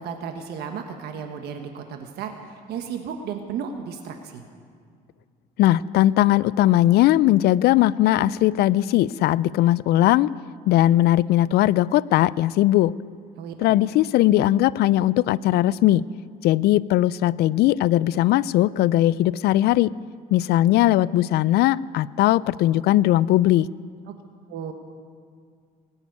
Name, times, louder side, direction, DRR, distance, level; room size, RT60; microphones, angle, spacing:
voice 1, 0.0-2.3 2.7-4.4 13.4-13.8 24.1-24.2 24.5-24.7, right 7 dB, 75° right, 5 dB, 1.3 m, -34 dB
voice 2, 5.6-10.3 10.7-12.9 13.6-16.0 16.4-19.9 20.3-23.7, left 14 dB, 75° left, 20 dB, 0.4 m, -19 dB
19.5 x 7.3 x 9.4 m, 2.1 s
cardioid pair, 110°, 17 cm